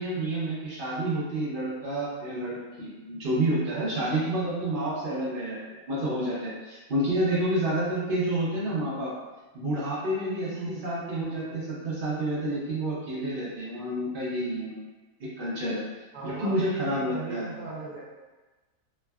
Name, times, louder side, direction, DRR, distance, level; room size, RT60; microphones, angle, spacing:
voice 1, 0.0-5.6 5.9-9.1 9.5-14.8 15.2-15.8 16.2-17.4, right 1 dB, 55° right, -8 dB, 0.6 m, -29 dB
voice 2, 10.5-10.9 16.1-18.0, right 3 dB, 70° right, -4 dB, 1.1 m, -37 dB
3.5 x 2.1 x 2.3 m, 1.2 s
omnidirectional pair, 1.8 m